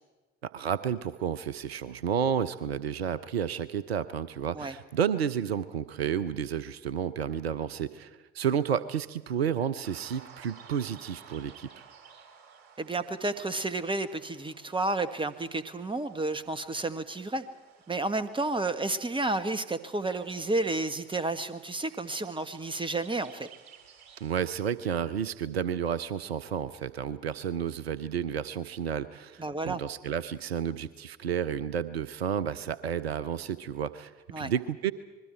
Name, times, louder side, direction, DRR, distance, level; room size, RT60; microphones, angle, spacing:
voice 1, 0.4-11.7 24.2-34.9, right 8 dB, 80° right, 15 dB, 0.6 m, -31 dB
sound 1, 9.8-24.5, right 6 dB, 65° right, 3.0 m, -55 dB
voice 2, 12.8-17.4 17.9-23.5 29.4-29.8 34.3-34.5, right 2 dB, 15° right, 11 dB, 1.7 m, -31 dB
27.5 x 21.5 x 4.6 m, 1.2 s
figure-of-eight pair, 50°, 31 cm